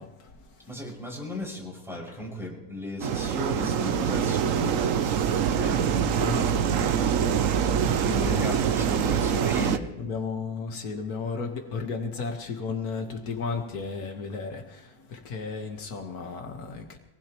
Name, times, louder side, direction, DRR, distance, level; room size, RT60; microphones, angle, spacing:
voice 1, 0.6-9.9, left 2 dB, ahead, -3 dB, 5.8 m, -37 dB
sound 1, 3.0-9.8, right 8 dB, 70° right, 1.1 m, -24 dB
voice 2, 6.0-6.4 10.0-14.6 15.3-17.0, left 4 dB, 85° left, 3 dB, 1.9 m, -33 dB
25.0 x 19.0 x 3.0 m, 1.0 s
omnidirectional pair, 1.5 m